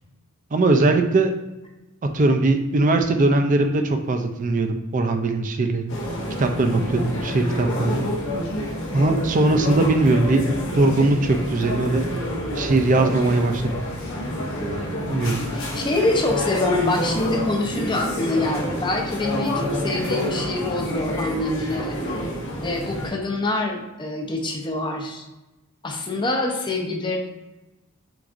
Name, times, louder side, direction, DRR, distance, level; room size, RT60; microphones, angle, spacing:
voice 1, 0.5-1.3 2.1-6.0 6.4-8.0 8.9-10.4 10.7-12.1 12.6-13.8 15.1-15.4, right 2 dB, 40° right, 5 dB, 0.4 m, -20 dB
sound 1, 5.9-23.1, equal, 65° left, 0.9 m, -28 dB
voice 2, 14.9-22.0 22.6-25.2 25.8-27.2, left 2 dB, 20° left, 1 dB, 0.6 m, -26 dB
6.0 x 2.6 x 2.5 m, 1.0 s
head